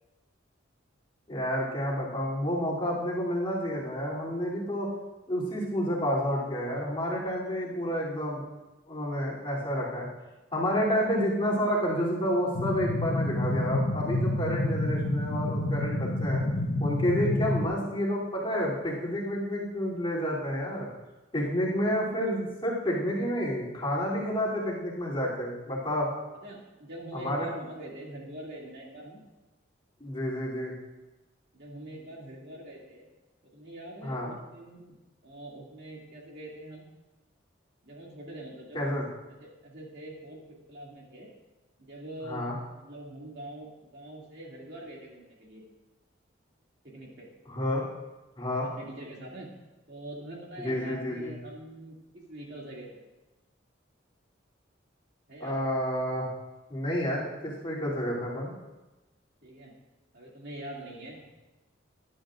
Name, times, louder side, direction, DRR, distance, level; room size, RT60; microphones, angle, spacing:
voice 1, 1.3-4.9 5.3-8.4 8.9-10.1 10.5-16.4 16.8-20.9 21.3-26.1 27.1-27.5 30.0-30.7 34.0-34.3 38.7-39.0 42.2-42.6 47.5-47.8 48.4-48.7 50.6-51.3 55.4-56.3 56.7-58.5, equal, 25° left, -7 dB, 3.1 m, -29 dB
sound 1, 12.5-17.6, left 1 dB, 65° left, 0.9 m, -28 dB
voice 2, 26.4-29.2 31.5-33.1 33.4-35.0 35.2-36.9 37.8-39.0 39.4-40.4 40.7-41.3 41.8-42.4 42.8-45.6 46.8-47.3 48.6-49.5 49.9-53.0 55.3-55.5 59.4-59.7 60.1-61.2, right 1 dB, 55° right, -3 dB, 2.5 m, -44 dB
19.5 x 11.0 x 2.5 m, 1.1 s
head